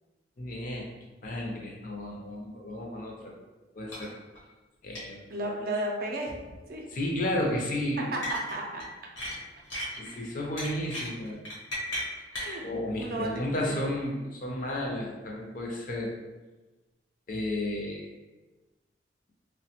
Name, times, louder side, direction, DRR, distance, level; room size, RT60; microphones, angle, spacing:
voice 1, 0.4-0.9 1.2-3.3 3.8-4.1 4.8-5.5 6.9-8.1 10.0-11.4 12.6-16.1 17.3-18.1, left 1 dB, 45° left, -1 dB, 0.5 m, -33 dB
sound 1, 3.9-4.1 4.3-4.4 4.9-5.1 6.3-6.5 8.2-8.9 9.2-10.1 10.6-12.5, left 1 dB, 85° left, 1.0 m, -35 dB
voice 2, 5.3-6.3 6.7-6.8 8.1-8.8 12.3-12.6 13.0-13.3 13.7-13.8, right 1 dB, 50° right, 0 dB, 0.5 m, -33 dB
3.0 x 2.1 x 2.8 m, 1.2 s
head